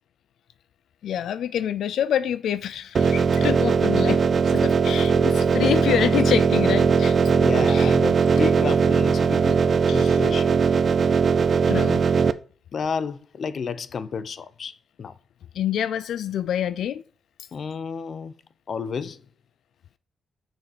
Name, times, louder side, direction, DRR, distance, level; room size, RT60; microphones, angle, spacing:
voice 1, 1.0-7.2 7.7-8.0 9.9-10.2 11.7-12.1 15.5-17.0, left 10 dB, 85° left, 0.4 m, -27 dB
sound 1, 2.9-12.3, right 5 dB, 40° right, 0.5 m, -19 dB
voice 2, 7.3-9.6 9.9-10.6 12.7-15.1 17.5-18.3 18.7-19.2, left 5 dB, 45° left, 0.7 m, -31 dB
7.1 x 6.3 x 4.9 m
wide cardioid pair, 150°, 0 cm